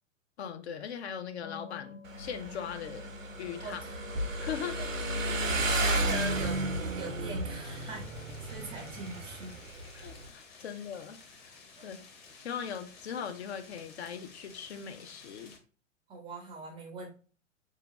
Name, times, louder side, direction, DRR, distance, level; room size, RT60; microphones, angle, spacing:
voice 1, 0.4-3.1 3.4-3.8 4.4-4.8 9.9-11.5 11.8-12.0 12.4-15.5, left 8 dB, 55° left, 0.6 m, -39 dB
sound 1, 1.4-7.6, left 7 dB, 40° left, 1.2 m, -53 dB
Motorcycle, 2.0-10.3, right 1 dB, 85° right, 0.7 m, -33 dB
voice 2, 3.6-4.0 4.7-6.6 7.0-8.1 8.4-9.6 11.8-11.9 16.1-17.1, right 2 dB, 15° right, 0.5 m, -42 dB
sound 2, 7.6-15.6, left 4 dB, 25° left, 0.8 m, -54 dB
3.5 x 2.8 x 3.0 m
figure-of-eight pair, 105°, 38 cm